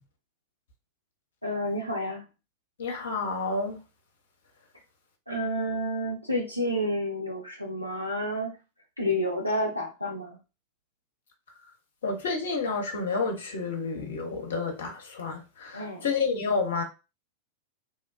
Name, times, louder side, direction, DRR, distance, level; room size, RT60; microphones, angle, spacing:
voice 1, 1.4-2.2 5.3-8.6 9.0-10.4 15.7-16.1, equal, 90° left, 0.4 m, -30 dB
voice 2, 2.8-3.8 12.0-16.8, left 4 dB, 60° left, 0.8 m, -30 dB
3.1 x 2.2 x 2.3 m
figure-of-eight pair, 90°, 0 cm